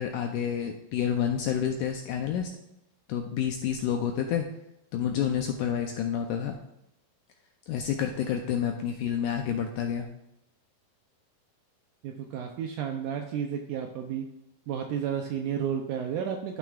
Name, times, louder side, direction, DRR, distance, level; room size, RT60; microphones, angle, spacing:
voice 1, 0.0-2.5 3.1-4.5 4.9-6.6 7.7-10.1, left 8 dB, 85° left, 3 dB, 1.9 m, -29 dB
voice 2, 12.0-14.3 14.7-16.6, right 8 dB, 90° right, 3 dB, 1.8 m, -32 dB
12.5 x 5.9 x 2.4 m, 0.82 s
omnidirectional pair, 4.2 m